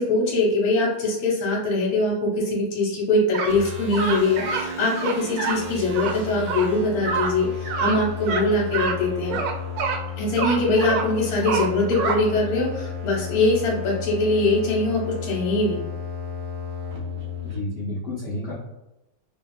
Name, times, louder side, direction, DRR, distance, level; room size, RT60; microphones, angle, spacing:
voice 1, 0.0-9.4 10.2-15.8, left 2 dB, 85° left, -3 dB, 1.5 m, -22 dB
sound 1, 3.3-3.6 3.9-4.7 4.9-5.6 5.9-6.1 6.5-6.7 7.0-7.3 7.6-8.0 8.2-8.4 8.7-9.0 9.3-10.0 10.4-11.1 11.4-12.2, right 5 dB, 90° right, 1.4 m, -26 dB
sound 2, 3.5-17.6, left 5 dB, 70° right, 0.7 m, -33 dB
voice 2, 17.4-18.5, left 1 dB, 60° left, -7 dB, 0.8 m, -30 dB
3.0 x 2.7 x 2.3 m, 0.97 s
omnidirectional pair, 2.3 m